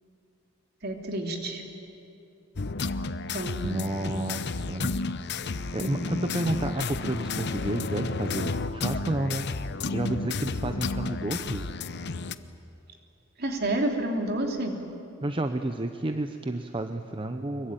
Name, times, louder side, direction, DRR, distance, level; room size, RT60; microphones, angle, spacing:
voice 1, 0.8-1.6 3.3-3.7 4.0-4.1 5.8-6.1 13.4-14.8, right 1 dB, 50° right, 3 dB, 3.2 m, -30 dB
sound 1, 2.6-12.3, left 3 dB, 55° left, 0.8 m, -32 dB
voice 2, 3.6-5.0 5.7-9.5 9.9-11.7 15.2-17.7, right 1 dB, 25° right, 7 dB, 0.8 m, -31 dB
24.5 x 22.5 x 9.2 m, 2.7 s
head